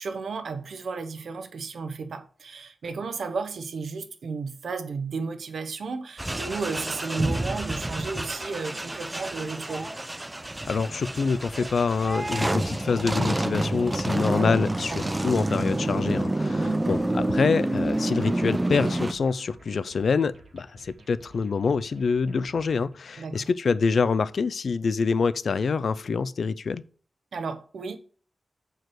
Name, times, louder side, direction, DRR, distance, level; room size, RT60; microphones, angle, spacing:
voice 1, 0.0-9.9 14.9-15.2 16.4-16.8 23.2-23.5 27.3-28.0, right 4 dB, 75° right, 0.9 m, -33 dB
sound 1, 6.2-19.1, right 1 dB, 15° right, 0.4 m, -28 dB
voice 2, 10.7-26.8, left 5 dB, 65° left, 0.4 m, -26 dB
sound 2, 13.4-22.9, right 2 dB, 60° right, 1.6 m, -53 dB
7.7 x 4.7 x 4.6 m
wide cardioid pair, 135°, 0 cm